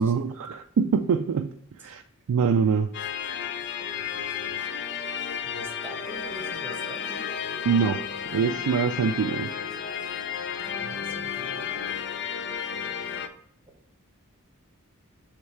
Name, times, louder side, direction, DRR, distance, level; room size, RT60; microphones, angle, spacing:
voice 1, 0.0-2.0 2.3-2.9 7.7-9.5, right 6 dB, 80° right, 0.4 m, -24 dB
sound 1, 2.9-13.3, left 7 dB, 55° left, 0.5 m, -32 dB
voice 2, 3.8-4.6 5.4-7.3 10.6-12.0, right 1 dB, 10° right, 1.0 m, -45 dB
6.4 x 3.3 x 4.6 m
head